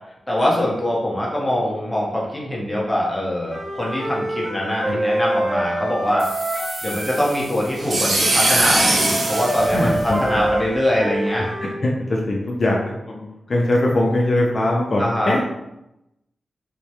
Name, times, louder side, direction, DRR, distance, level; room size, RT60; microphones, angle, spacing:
voice 1, 0.3-6.3 6.8-11.4 15.0-15.4, left 1 dB, 10° left, -4 dB, 0.7 m, -23 dB
Wind instrument woodwind instrument, 3.5-7.3 8.1-11.8, right 1 dB, 5° right, 1.1 m, -26 dB
sound 1, 6.2-10.5, right 2 dB, 60° right, 0.5 m, -22 dB
voice 2, 9.7-10.4 11.6-15.4, left 1 dB, 45° left, -3 dB, 0.4 m, -21 dB
2.2 x 2.0 x 2.8 m, 0.88 s
wide cardioid pair, 90°, 0 cm